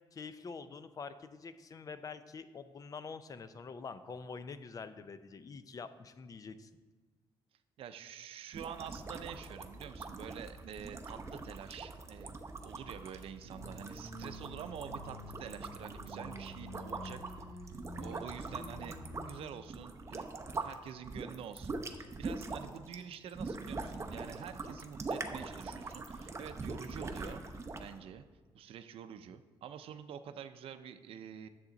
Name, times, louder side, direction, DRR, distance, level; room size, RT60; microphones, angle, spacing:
voice 1, 0.1-6.7, left 5 dB, 40° left, 12 dB, 0.5 m, -46 dB
voice 2, 7.8-12.4 12.6-17.5 18.0-20.3 20.6-28.2 28.5-31.5, right 8 dB, 75° right, 9 dB, 0.5 m, -47 dB
sound 1, 8.5-20.7 21.0-27.9, right 3 dB, 30° right, 0.8 m, -43 dB
sound 2, 8.5-19.5, right 2 dB, 45° right, 1.1 m, -55 dB
sound 3, 13.4-19.3, equal, 90° left, 2.6 m, -49 dB
9.8 x 7.3 x 3.9 m, 1.3 s
cardioid pair, 120°, 10 cm